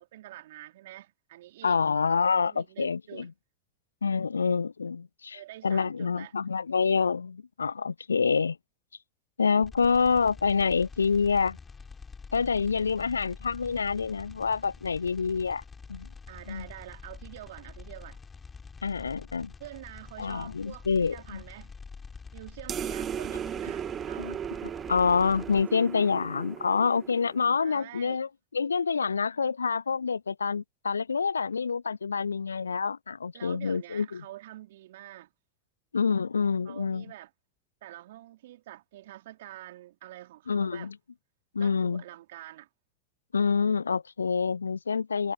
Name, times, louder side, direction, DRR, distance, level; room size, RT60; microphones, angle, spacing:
voice 1, 0.0-1.8 2.5-3.3 5.3-6.3 16.3-18.2 19.6-21.7 22.3-24.4 27.6-28.2 33.3-35.3 36.6-37.3 37.8-40.9 41.6-42.7, right 15 dB, 65° right, 4.3 m, -46 dB
voice 2, 1.6-3.3 4.0-8.6 9.4-11.6 12.3-15.6 15.9-16.1 16.5-16.7 18.8-19.5 20.2-21.4 24.2-24.4 24.9-34.2 35.9-37.0 40.5-41.0 41.5-42.0 43.3-45.3, left 5 dB, 85° left, 0.3 m, -27 dB
sound 1, 9.6-25.6, left 5 dB, 20° left, 7.2 m, -47 dB
sound 2, 22.7-27.6, right 9 dB, 30° right, 2.2 m, -36 dB
figure-of-eight pair, 85°, 0 cm